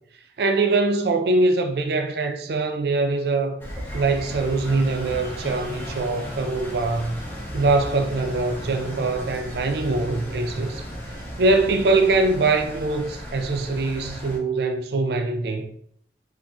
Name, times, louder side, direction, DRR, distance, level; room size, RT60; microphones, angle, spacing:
voice 1, 0.4-3.6 3.9-7.2 7.5-10.8 11.4-15.7, right 3 dB, 65° right, 0.4 m, -23 dB
Engine, 3.6-14.4, equal, 10° left, 0.5 m, -35 dB
4.0 x 2.5 x 2.3 m
head